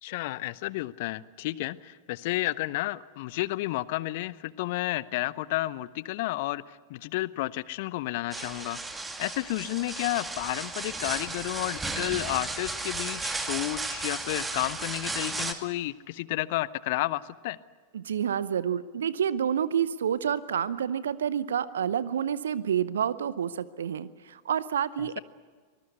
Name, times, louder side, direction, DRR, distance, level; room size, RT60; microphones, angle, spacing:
voice 1, 0.0-8.8 9.2-17.6 25.0-25.2, left 18 dB, 50° left, 20 dB, 0.7 m, -31 dB
sound 1, 8.3-15.5, right 3 dB, 10° right, 2.2 m, -34 dB
voice 2, 17.9-25.2, right 8 dB, 65° right, 18 dB, 0.7 m, -29 dB
25.0 x 20.0 x 8.2 m, 1.5 s
figure-of-eight pair, 90°, 0 cm